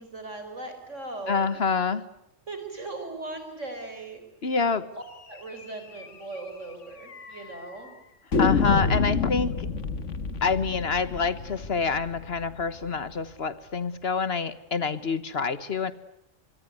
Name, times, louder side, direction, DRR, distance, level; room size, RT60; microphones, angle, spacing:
voice 1, 0.0-1.5 2.5-4.2 4.9-7.9, right 2 dB, 80° right, 7 dB, 5.1 m, -39 dB
voice 2, 1.3-2.1 4.4-4.9 8.4-9.7 10.4-15.9, left 5 dB, 55° left, 14 dB, 1.5 m, -27 dB
sound 1, 5.5-5.6 6.0-6.1 6.3-6.4 7.1-7.6 8.3-13.1, left 5 dB, 75° left, 1.9 m, -28 dB
25.0 x 24.0 x 9.5 m, 0.82 s
omnidirectional pair, 1.3 m